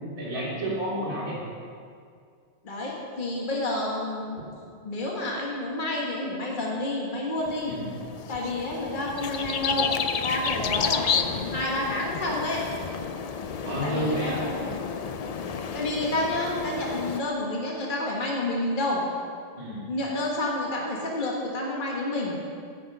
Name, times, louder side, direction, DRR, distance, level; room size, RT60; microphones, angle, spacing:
voice 1, 0.0-1.4 7.7-7.9 13.5-14.4 19.5-19.9, equal, 30° right, -8 dB, 2.7 m, -30 dB
voice 2, 2.6-4.4 4.8-7.7 8.3-9.9 10.2-12.6 13.8-14.7 15.7-19.0 19.9-22.3, left 1 dB, 40° left, -3 dB, 1.6 m, -29 dB
sound 1, 7.4-17.2, left 6 dB, 65° left, 0.3 m, -31 dB
15.5 x 6.3 x 5.4 m, 2.2 s
omnidirectional pair, 1.3 m